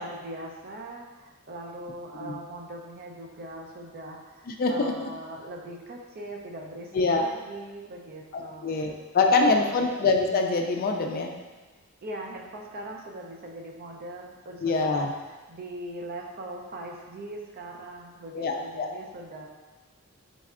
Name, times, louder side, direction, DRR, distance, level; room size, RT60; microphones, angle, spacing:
voice 1, 0.0-9.0 9.3-9.9 12.0-19.5, right 1 dB, 45° right, 0 dB, 0.5 m, -40 dB
voice 2, 4.5-4.9 6.9-7.3 8.3-11.3 14.6-15.1 18.3-18.9, left 3 dB, 40° left, 3 dB, 0.4 m, -24 dB
4.3 x 4.1 x 2.4 m, 1.2 s
head